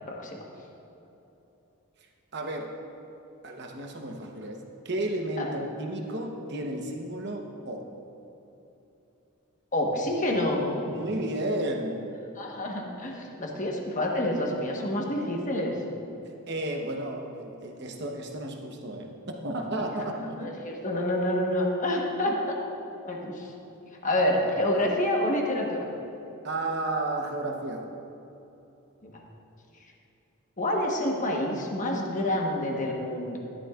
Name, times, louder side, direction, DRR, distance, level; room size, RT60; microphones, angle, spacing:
voice 1, 0.1-0.4 5.4-5.5 9.7-11.0 12.4-15.7 20.4-22.6 23.0-23.5 24.0-25.8 29.0-29.2 30.6-33.4, left 1 dB, 35° left, 0 dB, 1.2 m, -28 dB
voice 2, 2.3-2.7 3.4-7.8 10.9-12.1 16.5-20.5 22.3-22.4 26.4-27.9, right 1 dB, 50° right, 2 dB, 1.0 m, -33 dB
13.5 x 11.5 x 2.4 m, 3.0 s
head